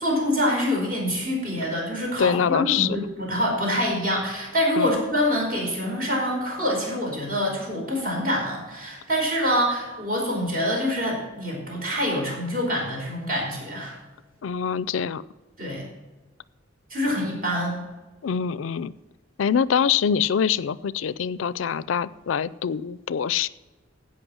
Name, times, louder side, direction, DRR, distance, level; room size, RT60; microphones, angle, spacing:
voice 1, 0.0-14.0 15.6-15.8 16.9-17.8, equal, 45° right, -1 dB, 4.8 m, -25 dB
voice 2, 2.2-3.0 4.8-5.0 14.4-15.2 18.2-18.9 19.4-23.5, left 7 dB, 85° left, 19 dB, 0.4 m, -24 dB
16.0 x 5.8 x 6.3 m, 1.1 s
head